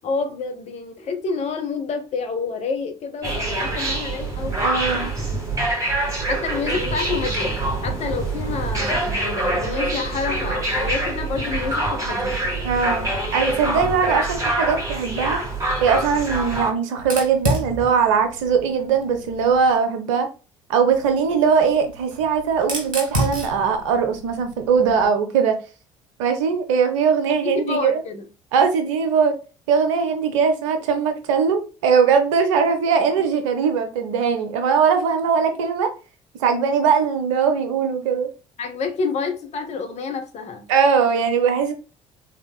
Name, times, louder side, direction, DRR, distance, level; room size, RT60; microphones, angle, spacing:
voice 1, 0.0-5.1 6.3-7.6 7.8-12.4 27.4-28.3 38.6-40.7, left 4 dB, 40° left, 0.8 m, -28 dB
sound 1, 3.2-16.7, right 2 dB, 20° right, 1.6 m, -25 dB
voice 2, 4.6-5.1 12.6-15.4 15.8-20.3 20.7-25.6 26.2-28.0 28.5-29.3 29.7-35.9 36.4-38.3 40.7-41.7, right 6 dB, 65° right, 0.7 m, -20 dB
Fire, 17.0-19.7 20.9-25.1, equal, 85° right, 1.0 m, -30 dB
3.6 x 3.4 x 2.2 m
figure-of-eight pair, 55°, 17 cm